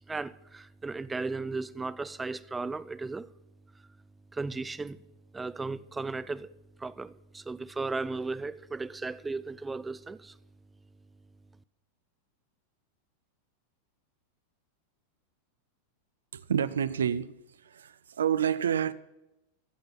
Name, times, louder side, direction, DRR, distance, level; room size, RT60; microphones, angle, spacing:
voice 1, 0.1-3.3 4.3-5.0 5.3-6.5 6.8-10.4, right 3 dB, 10° right, 0.4 m, -35 dB
voice 2, 16.3-17.3 17.6-18.9, right 8 dB, 65° right, 0.5 m, -28 dB
15.0 x 5.1 x 8.1 m
figure-of-eight pair, 90°, 0 cm